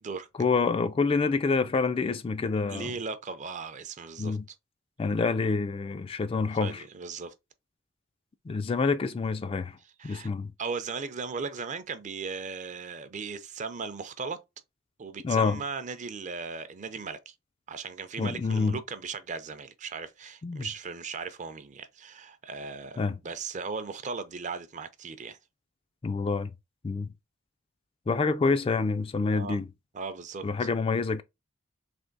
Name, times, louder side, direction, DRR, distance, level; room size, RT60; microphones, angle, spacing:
voice 1, 0.4-2.9 4.2-4.5 5.0-6.8 8.5-9.8 10.0-10.5 15.2-15.6 18.2-18.8 20.4-20.7 23.0-23.2 26.0-26.5 26.8-27.1 28.1-29.7 30.4-31.2, left 4 dB, 25° left, 0.3 m, -27 dB
voice 2, 2.7-4.4 6.6-7.3 10.0-10.3 10.6-14.4 15.0-17.3 17.7-25.4 29.3-29.6 29.9-30.5, right 5 dB, 35° right, 0.5 m, -37 dB
3.4 x 3.1 x 3.9 m
head